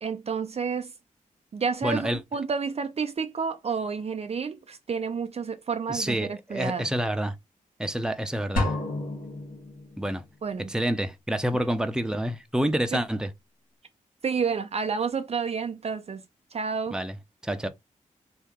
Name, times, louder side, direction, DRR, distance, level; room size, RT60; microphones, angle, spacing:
voice 1, 0.0-0.9 1.5-6.9 10.4-10.7 12.9-13.0 14.2-16.2 16.5-17.0, right 5 dB, 50° right, 0.4 m, -30 dB
voice 2, 1.8-2.2 5.9-7.3 7.8-8.7 10.0-10.2 10.7-13.3 16.9-17.1 17.4-17.7, right 1 dB, 5° right, 0.6 m, -28 dB
sound 1, 8.6-10.4, left 2 dB, 85° left, 1.4 m, -31 dB
2.9 x 2.8 x 3.5 m
cardioid pair, 55°, 14 cm